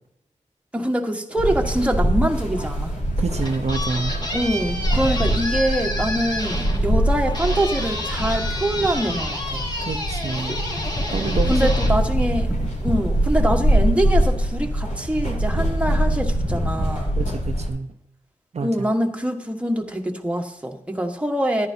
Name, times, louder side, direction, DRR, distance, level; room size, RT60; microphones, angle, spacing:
voice 1, 0.7-2.9 4.3-9.6 11.5-12.5 12.8-17.1 18.6-21.7, right 1 dB, 10° right, 2 dB, 1.4 m, -24 dB
sound 1, 1.4-17.7, right 1 dB, 85° left, 5.0 m, -23 dB
sound 2, 3.2-12.8, left 1 dB, 35° left, 2.8 m, -30 dB
voice 2, 3.2-4.1 9.8-10.6 11.1-11.7 17.2-17.9 18.5-18.9, right 4 dB, 60° right, 5 dB, 0.7 m, -28 dB
14.0 x 10.5 x 2.8 m, 0.81 s
wide cardioid pair, 70°, 13 cm